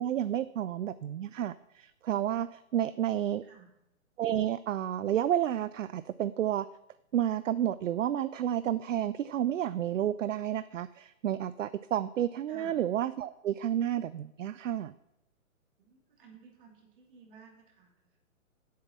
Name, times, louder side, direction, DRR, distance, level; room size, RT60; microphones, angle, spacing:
voice 1, 0.0-3.4 4.2-6.7 7.1-14.9, right 11 dB, 65° right, 15 dB, 0.5 m, -31 dB
voice 2, 3.3-3.7 12.5-12.7 15.8-18.2, right 5 dB, 40° right, 0 dB, 2.7 m, -55 dB
7.9 x 6.8 x 7.2 m, 0.85 s
hypercardioid pair, 155°, 42 cm